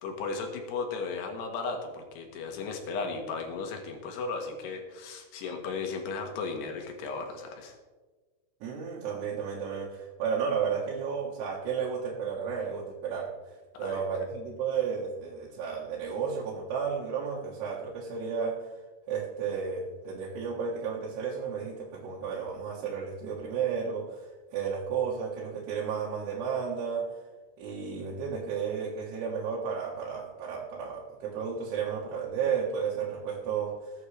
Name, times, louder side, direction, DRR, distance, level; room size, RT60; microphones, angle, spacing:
voice 1, 0.0-7.8 13.7-14.0, left 4 dB, 85° left, 3 dB, 3.7 m, -35 dB
voice 2, 8.6-18.8 19.1-27.2 27.6-34.1, right 6 dB, 85° right, -5 dB, 3.6 m, -33 dB
20.0 x 8.7 x 3.3 m, 1.3 s
omnidirectional pair, 4.6 m